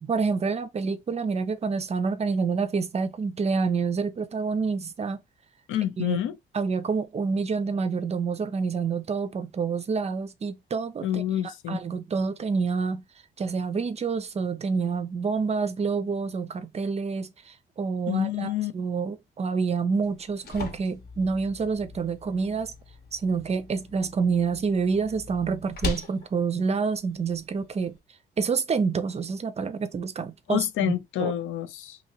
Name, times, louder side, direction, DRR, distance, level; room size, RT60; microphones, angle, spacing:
voice 1, 0.0-5.2 6.0-6.2 6.5-11.2 11.7-13.0 13.4-22.7 23.1-28.0 28.4-30.9 31.2-31.3, right 5 dB, 35° right, 0.5 m, -28 dB
voice 2, 5.7-6.4 11.0-11.8 18.1-18.7 30.5-32.0, left 11 dB, 85° left, 0.5 m, -27 dB
sound 1, 20.0-28.0, left 3 dB, 55° left, 1.0 m, -40 dB
2.8 x 2.6 x 2.8 m
cardioid pair, 90°, 20 cm